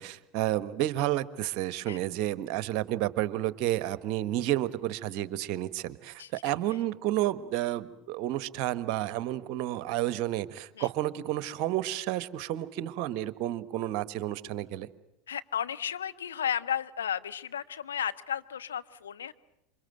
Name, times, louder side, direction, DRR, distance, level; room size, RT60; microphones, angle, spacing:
voice 1, 0.0-14.9, right 14 dB, 50° right, 15 dB, 1.3 m, -31 dB
voice 2, 6.2-6.5 10.8-10.9 15.3-19.3, left 9 dB, 75° left, 11 dB, 1.2 m, -34 dB
28.0 x 25.5 x 7.9 m, 0.84 s
figure-of-eight pair, 80°, 0 cm